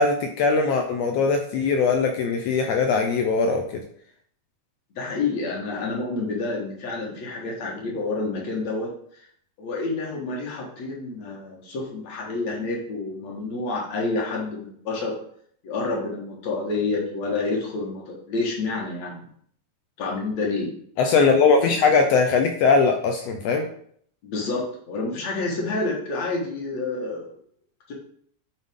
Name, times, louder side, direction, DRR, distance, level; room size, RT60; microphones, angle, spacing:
voice 1, 0.0-3.8 21.0-23.7, left 4 dB, 80° left, 4 dB, 1.5 m, -20 dB
voice 2, 5.0-9.2 9.6-15.1 15.6-19.3 20.0-20.7 24.2-27.2 27.9-28.0, left 3 dB, 60° left, -1 dB, 2.5 m, -28 dB
8.9 x 4.0 x 3.6 m, 0.62 s
omnidirectional pair, 3.6 m